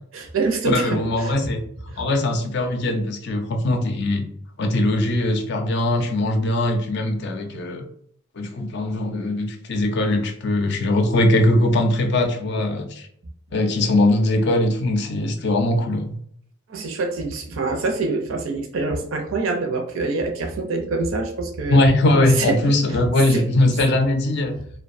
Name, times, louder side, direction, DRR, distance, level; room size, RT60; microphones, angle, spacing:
voice 1, 0.1-1.4 16.7-21.8 22.4-22.6 23.3-23.8, right 3 dB, 65° right, 3 dB, 0.5 m, -25 dB
voice 2, 0.6-1.6 2.0-4.2 4.6-7.9 8.4-13.0 13.5-16.2 21.7-24.6, left 1 dB, 50° left, 5 dB, 0.4 m, -20 dB
2.6 x 2.1 x 2.5 m, 0.67 s
head